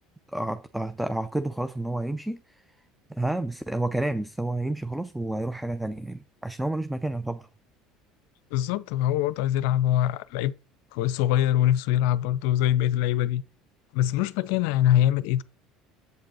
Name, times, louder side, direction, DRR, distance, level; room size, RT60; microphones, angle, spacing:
voice 1, 0.3-2.6 3.1-7.5, right 2 dB, 5° right, 0.5 m, -30 dB
voice 2, 8.5-10.5 10.9-13.4 13.9-15.4, left 12 dB, 70° left, 0.5 m, -23 dB
8.0 x 5.1 x 4.1 m
hypercardioid pair, 75°, 0 cm